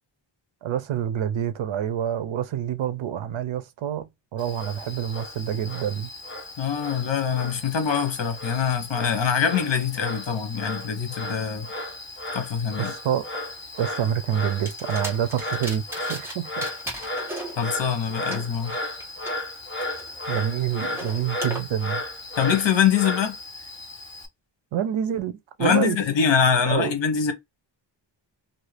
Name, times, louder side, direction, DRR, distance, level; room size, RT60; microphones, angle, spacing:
voice 1, 0.6-6.1 12.9-13.2 13.8-16.7 20.3-22.0 24.7-26.0 26.6-27.0, right 9 dB, 85° right, 0.6 m, -27 dB
Frog, 4.4-24.3, left 1 dB, 25° left, 1.0 m, -35 dB
voice 2, 6.6-11.7 12.3-12.9 17.6-18.7 22.4-23.4 25.6-27.3, left 7 dB, 70° left, 1.0 m, -24 dB
sound 1, 14.7-16.3 16.6-19.3 19.8-21.6, right 1 dB, 5° right, 1.2 m, -37 dB
2.7 x 2.6 x 3.2 m
wide cardioid pair, 150°, 46 cm